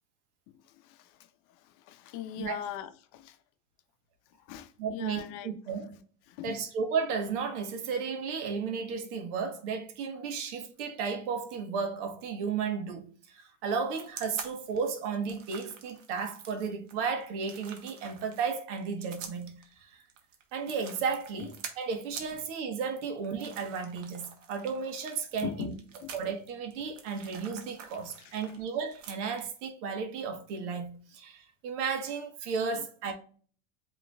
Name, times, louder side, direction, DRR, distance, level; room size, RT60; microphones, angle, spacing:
voice 1, 0.7-1.2 1.5-3.4 4.4-5.5 6.3-6.6 21.4-21.5 25.4-26.1 28.2-28.3, left 11 dB, 60° left, 0.7 m, -41 dB
voice 2, 4.8-6.0 6.4-20.0 20.5-25.7 26.1-33.1, right 5 dB, 70° right, 1.2 m, -34 dB
sound 1, 13.9-29.6, right 7 dB, 90° right, 1.0 m, -47 dB
7.7 x 3.0 x 2.3 m
supercardioid pair, 100°, 37 cm